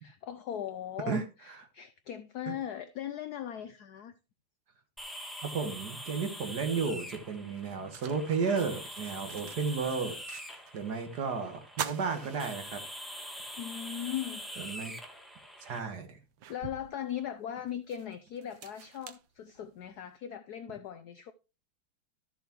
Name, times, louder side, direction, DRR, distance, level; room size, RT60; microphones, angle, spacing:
voice 1, 0.0-4.2 13.6-14.4 16.5-21.3, left 10 dB, 75° left, 0.9 m, -39 dB
sound 1, 5.0-15.8, equal, ahead, 0.9 m, -44 dB
voice 2, 5.4-10.2 10.7-12.8 14.6-14.9 15.6-16.2, right 5 dB, 55° right, 1.7 m, -33 dB
sound 2, 7.5-10.9 11.2-11.3 11.7-13.2 13.6-13.7 15.1-15.2 15.8-20.0, right 10 dB, 70° right, 1.5 m, -45 dB
13.0 x 7.0 x 2.9 m
omnidirectional pair, 2.3 m